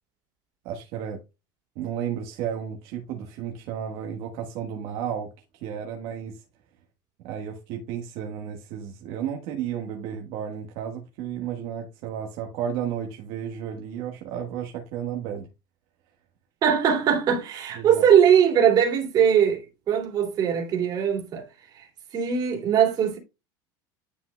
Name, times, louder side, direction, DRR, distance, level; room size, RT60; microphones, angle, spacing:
voice 1, 0.6-1.2 1.7-6.4 7.2-15.5 17.7-18.0, right 9 dB, 60° right, 1.4 m, -33 dB
voice 2, 16.6-21.5 21.7-21.9 22.1-23.2, right 8 dB, 35° right, 2.7 m, -21 dB
10.5 x 5.6 x 2.2 m
cardioid pair, 145°, 11 cm